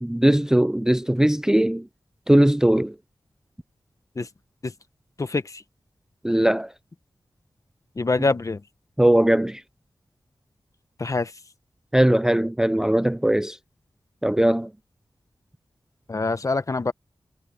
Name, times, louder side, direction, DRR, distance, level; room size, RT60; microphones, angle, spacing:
voice 1, 0.0-1.9 2.3-2.9 6.2-6.7 9.0-9.6 11.9-13.6 14.2-14.7, right 1 dB, 5° right, 0.4 m, -19 dB
voice 2, 5.2-5.6 8.0-8.6 11.0-11.3 16.1-16.9, left 3 dB, 40° left, 1.0 m, -25 dB
wide cardioid pair, 90°, 8 cm